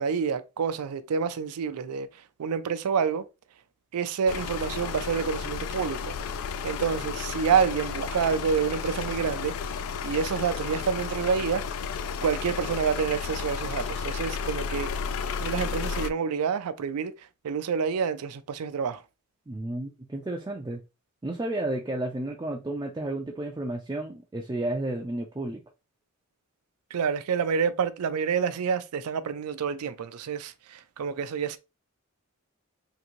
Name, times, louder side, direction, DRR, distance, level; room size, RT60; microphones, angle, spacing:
voice 1, 0.0-2.1 2.4-3.3 3.9-6.1 6.6-9.6 10.0-11.7 12.2-14.9 15.4-17.1 17.4-19.0 26.9-31.6, right 6 dB, 85° right, 0.4 m, -28 dB
sound 1, 4.3-16.1, left 6 dB, 65° left, 0.3 m, -33 dB
voice 2, 19.5-20.8 21.2-25.6, right 1 dB, 20° right, 0.3 m, -32 dB
3.8 x 2.6 x 2.9 m
head